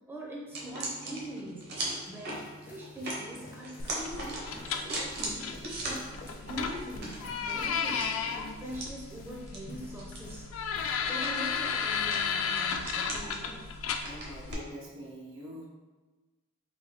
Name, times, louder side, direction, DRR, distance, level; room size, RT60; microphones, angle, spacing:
voice 1, 0.1-1.7 2.1-4.4 4.7-10.5 11.0-13.7, equal, 10° right, -3 dB, 0.5 m, -43 dB
sound 1, 0.5-14.7, right 1 dB, 55° right, 0.8 m, -41 dB
sound 2, 1.7-11.6 11.9-12.3, left 1 dB, 45° left, 0.7 m, -51 dB
sound 3, 3.8-14.5, left 6 dB, 90° left, 0.3 m, -34 dB
voice 2, 14.0-15.7, equal, 85° right, -3 dB, 0.9 m, -44 dB
3.8 x 2.2 x 3.4 m, 1.3 s
head